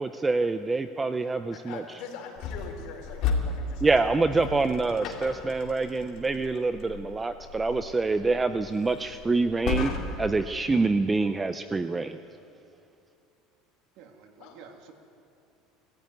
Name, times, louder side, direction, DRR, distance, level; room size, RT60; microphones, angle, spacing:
voice 1, 0.0-1.8 3.8-12.2, right 3 dB, 10° right, 10 dB, 0.4 m, -26 dB
voice 2, 1.5-4.3 14.4-14.6, left 6 dB, 60° left, 1 dB, 4.2 m, -43 dB
sound 1, 2.4-10.4, left 5 dB, 45° left, 2.6 m, -35 dB
voice 3, 14.0-14.9, right 6 dB, 55° right, 4 dB, 2.1 m, -50 dB
19.5 x 14.5 x 9.4 m, 2.6 s
cardioid pair, 170°, 0 cm